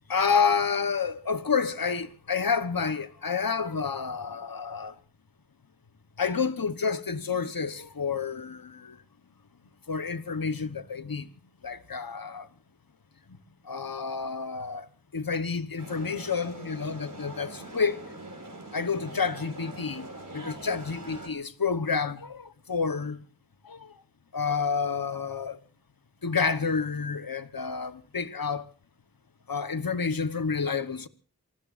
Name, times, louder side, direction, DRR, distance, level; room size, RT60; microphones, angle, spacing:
voice 1, 0.1-4.9 6.2-9.0 9.9-11.3 11.6-12.5 13.7-14.9 15.1-18.0 18.7-20.1 20.3-23.2 23.6-23.9 24.3-25.6 26.2-28.6 29.5-31.1, left 5 dB, 75° left, 1.1 m, -29 dB
sound 1, 15.8-21.3, right 2 dB, 60° right, 5.4 m, -43 dB
26.5 x 20.0 x 2.6 m
wide cardioid pair, 45°, 35 cm